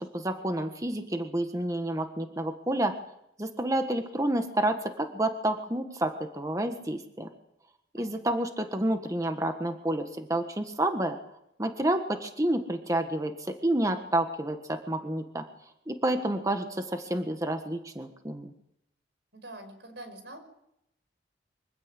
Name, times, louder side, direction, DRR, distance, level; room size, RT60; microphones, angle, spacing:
voice 1, 0.0-3.0 3.4-7.3 7.9-11.2 11.6-15.4 15.9-18.5, right 1 dB, 20° right, 7 dB, 1.5 m, -29 dB
voice 2, 19.3-20.4, right 1 dB, 90° right, 8 dB, 5.4 m, -45 dB
24.5 x 15.5 x 8.3 m, 0.80 s
head